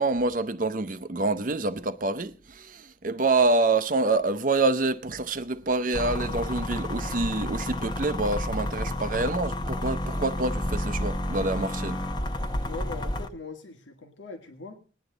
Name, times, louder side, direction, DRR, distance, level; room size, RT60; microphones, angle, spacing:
voice 1, 0.0-12.0, right 3 dB, 45° right, 0.7 m, -26 dB
sound 1, 5.9-13.3, left 1 dB, 25° left, 0.9 m, -30 dB
voice 2, 12.7-14.8, left 3 dB, 85° left, 1.9 m, -41 dB
20.0 x 9.9 x 3.9 m
head